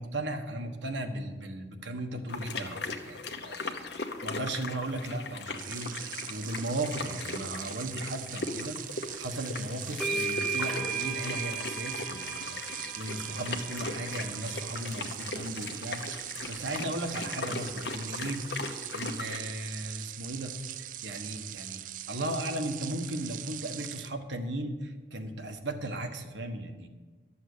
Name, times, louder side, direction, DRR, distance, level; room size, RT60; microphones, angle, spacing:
voice 1, 0.0-21.8 22.1-26.9, right 1 dB, 80° right, 4 dB, 1.3 m, -36 dB
sound 1, 2.3-19.4, left 3 dB, 65° left, 1.1 m, -39 dB
sound 2, 5.5-24.1, right 13 dB, 45° right, 0.3 m, -41 dB
sound 3, 9.4-9.5 10.0-14.8, right 4 dB, 5° left, 1.1 m, -36 dB
13.0 x 7.2 x 8.4 m, 1.4 s
head